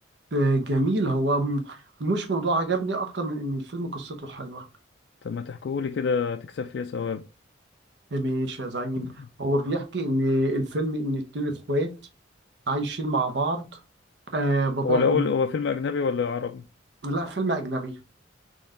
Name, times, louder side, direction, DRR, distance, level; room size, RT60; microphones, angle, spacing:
voice 1, 0.3-4.6 8.1-9.1 9.4-11.9 12.7-13.6 14.3-15.3 17.0-17.9, right 1 dB, 65° right, 0.8 m, -26 dB
voice 2, 5.2-7.3 9.0-9.1 14.8-16.7, left 5 dB, 65° left, 0.3 m, -26 dB
4.4 x 3.1 x 3.7 m
head